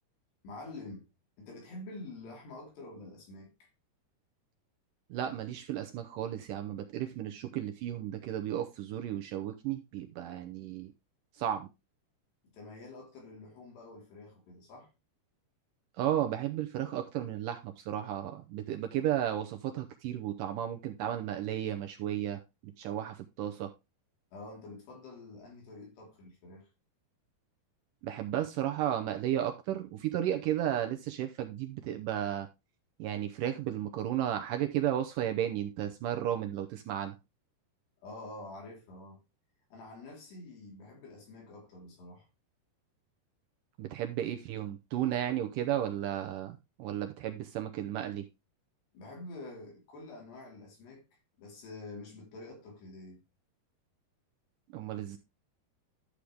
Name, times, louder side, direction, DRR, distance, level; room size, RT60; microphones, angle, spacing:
voice 1, 0.4-1.1 1.4-3.7 12.5-14.9 24.3-26.7 38.0-39.2 39.7-42.3 48.9-51.0 51.4-53.2, left 2 dB, 80° left, 6.0 m, -47 dB
voice 2, 5.1-10.9 11.3-11.7 16.0-23.7 28.0-32.5 33.0-37.2 43.8-48.3 54.7-55.2, right 11 dB, 85° right, 1.9 m, -34 dB
11.5 x 6.4 x 3.5 m
omnidirectional pair, 4.7 m